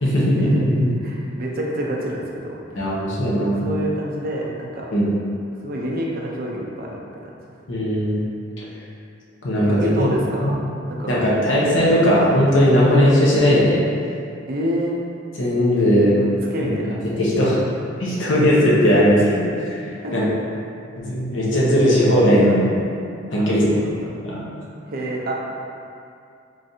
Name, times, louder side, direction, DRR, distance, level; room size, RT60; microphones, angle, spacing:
voice 1, 0.0-0.9 2.8-3.7 4.9-5.1 7.7-8.2 8.6-8.7 9.4-10.1 10.4-10.6 11.1-13.8 15.4-16.1 16.6-17.6 18.0-19.9 20.1-20.3 21.0-22.8 23.3-24.4, equal, 75° left, -6 dB, 0.9 m, -18 dB
voice 2, 1.0-2.6 3.6-4.9 5.6-7.0 9.6-10.5 10.9-11.1 14.5-14.9 16.2-16.3 16.5-16.8 20.0-20.1 23.4-23.9 24.9-25.3, right 1 dB, 50° right, -2 dB, 0.5 m, -27 dB
3.8 x 3.2 x 2.7 m, 2.5 s
head